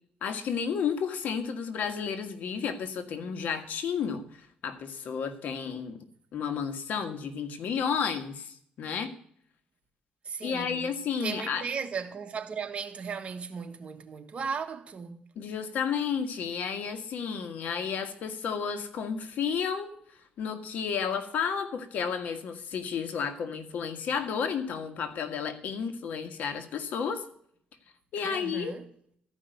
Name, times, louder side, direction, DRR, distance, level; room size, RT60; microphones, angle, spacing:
voice 1, 0.2-6.0 6.3-9.1 10.4-11.6 15.3-19.9 20.4-27.2 28.1-28.7, left 6 dB, 75° left, 1.7 m, -32 dB
voice 2, 10.2-15.2 28.2-28.9, right 6 dB, 45° right, 1.4 m, -36 dB
14.0 x 5.5 x 9.2 m
cardioid pair, 100°, 3 cm